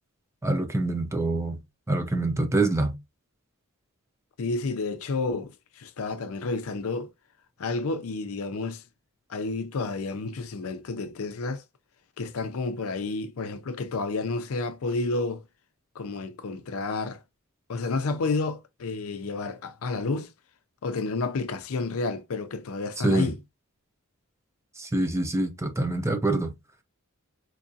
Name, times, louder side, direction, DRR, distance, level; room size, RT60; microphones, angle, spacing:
voice 1, 0.4-1.6 1.9-2.9 23.0-23.3 24.8-26.5, right 2 dB, 15° right, 0.6 m, -25 dB
voice 2, 4.4-7.1 7.6-8.8 9.3-11.6 12.2-15.4 16.0-17.2 17.7-20.3 20.8-23.4, left 3 dB, 75° left, 0.5 m, -30 dB
4.6 x 2.4 x 2.6 m
head